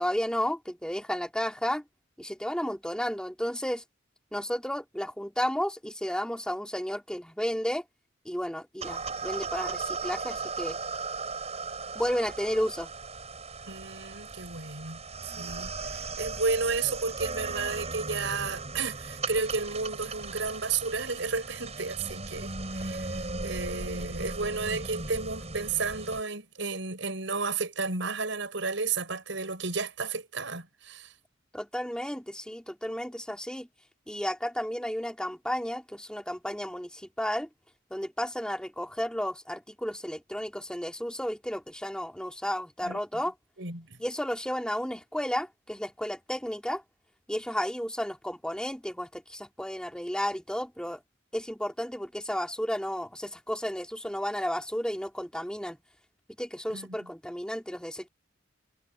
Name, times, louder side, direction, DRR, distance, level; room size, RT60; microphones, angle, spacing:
voice 1, 0.0-1.8 2.2-3.8 4.3-7.8 8.2-10.8 11.9-12.9 31.5-33.7 34.1-37.5 37.9-43.3 44.0-46.8 47.3-51.0 51.3-55.8 56.4-58.1, equal, 5° left, 2.9 m, -32 dB
sound 1, 8.8-26.2, right 3 dB, 35° right, 7.2 m, -37 dB
voice 2, 13.7-15.0 15.4-31.1 42.8-43.0 43.6-44.0 56.7-57.1, right 4 dB, 75° right, 6.5 m, -32 dB
head